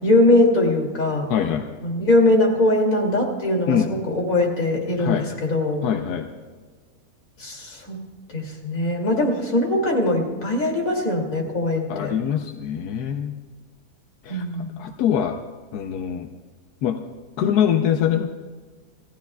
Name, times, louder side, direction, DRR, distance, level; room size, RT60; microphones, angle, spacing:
voice 1, 0.0-1.3 1.8-5.9 7.4-8.0 8.3-12.2 14.3-14.9, left 1 dB, 60° left, 0 dB, 3.1 m, -21 dB
voice 2, 1.3-1.6 3.7-3.9 5.0-5.3 5.8-6.3 11.9-13.3 14.2-14.4 14.8-15.4 15.7-16.3 16.8-17.0 17.4-18.3, left 9 dB, 85° left, 5 dB, 1.3 m, -23 dB
30.0 x 15.5 x 2.3 m, 1.5 s
omnidirectional pair, 1.6 m